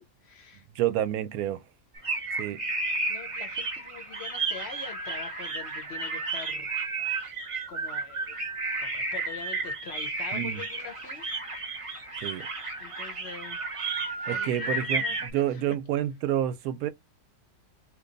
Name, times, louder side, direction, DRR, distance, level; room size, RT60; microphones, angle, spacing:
voice 1, 0.0-0.7 2.5-2.6 3.1-6.7 7.7-8.5 8.8-11.2 12.8-13.6 14.2-15.6, left 6 dB, 55° left, 0.7 m, -44 dB
voice 2, 0.8-1.6 2.4-2.6 10.3-10.6 12.2-12.5 14.3-15.1 15.3-16.9, right 11 dB, 75° right, 1.0 m, -28 dB
sound 1, 2.0-15.3, right 3 dB, 30° right, 0.7 m, -32 dB
3.0 x 2.2 x 3.8 m
omnidirectional pair, 1.7 m